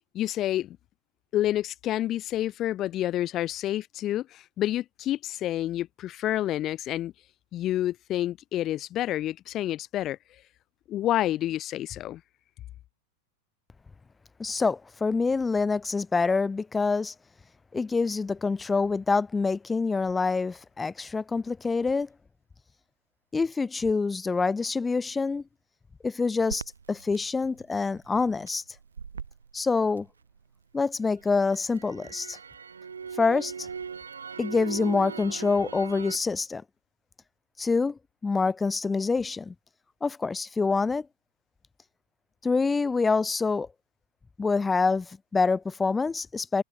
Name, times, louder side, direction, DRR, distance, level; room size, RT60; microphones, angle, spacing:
voice 1, 0.1-0.8 1.3-7.1 7.5-10.4 10.9-12.2, left 13 dB, 35° left, 1.6 m, -29 dB
voice 2, 14.4-17.1 17.7-22.1 23.3-25.4 26.0-26.6 26.9-28.6 29.5-30.1 30.7-32.4 33.2-33.7 34.4-36.6 37.6-39.5 40.0-41.1 42.4-43.7 44.4-46.6, left 4 dB, 15° left, 1.8 m, -26 dB
Crackle, 26.5-30.6 31.0-36.2, right 6 dB, 75° right, 3.3 m, -40 dB
figure-of-eight pair, 90°, 0 cm